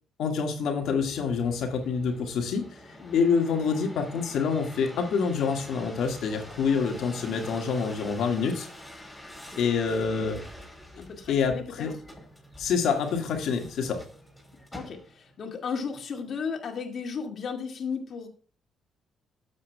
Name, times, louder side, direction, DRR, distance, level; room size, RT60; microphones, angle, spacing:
voice 1, 0.2-2.6 3.1-8.7 9.6-10.4 11.3-11.9 12.6-14.0, left 5 dB, 80° left, 4 dB, 1.8 m, -27 dB
sound 1, 0.8-15.4 15.9-16.5, left 1 dB, 5° left, 3.7 m, -46 dB
voice 2, 9.9-10.4 11.0-11.9 14.7-18.3, left 5 dB, 55° left, 3 dB, 2.1 m, -35 dB
13.5 x 7.4 x 2.3 m, 0.38 s
cardioid pair, 90°, 0 cm